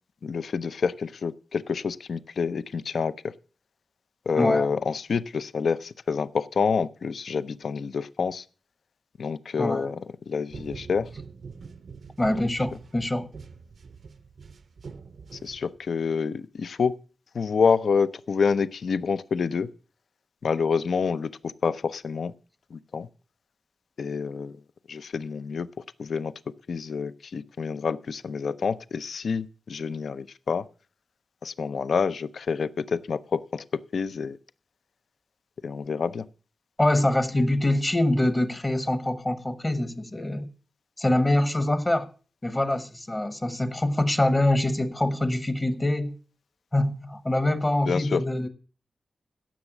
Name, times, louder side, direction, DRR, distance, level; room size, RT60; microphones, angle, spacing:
voice 1, 0.2-3.3 4.3-8.4 9.2-10.0 10.3-11.1 12.3-12.4 15.3-16.9 17.3-19.7 20.4-22.3 22.7-23.1 24.0-24.6 24.9-25.7 26.0-26.3 26.7-30.7 31.4-34.4 35.6-36.3 47.9-48.2, left 5 dB, 60° left, 0.6 m, -27 dB
voice 2, 4.4-4.7 9.6-9.9 12.2-13.3 36.8-40.5 41.0-42.1 42.4-46.2 46.7-48.5, left 1 dB, 20° left, 0.9 m, -24 dB
sound 1, 10.5-16.0, right 5 dB, 55° right, 0.6 m, -44 dB
16.5 x 7.2 x 5.9 m
wide cardioid pair, 180°, 0 cm